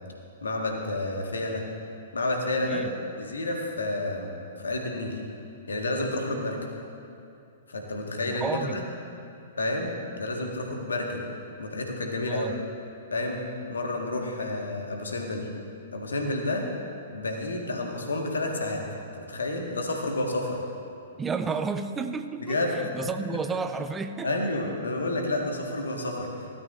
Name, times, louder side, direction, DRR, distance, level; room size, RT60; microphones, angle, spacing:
voice 1, 0.4-1.6 2.1-2.8 3.2-4.3 4.6-5.2 5.7-6.6 7.7-8.8 9.6-11.2 11.6-12.5 13.1-13.4 13.7-15.5 15.9-16.6 17.1-18.8 19.1-20.6 22.4-22.9 24.2-26.3, left 2 dB, 70° left, 1 dB, 1.6 m, -30 dB
voice 2, 2.7-3.0 8.2-8.9 12.3-12.6 21.2-24.4, right 4 dB, 15° right, 8 dB, 0.5 m, -32 dB
16.0 x 12.5 x 2.6 m, 2.6 s
figure-of-eight pair, 110°, 0 cm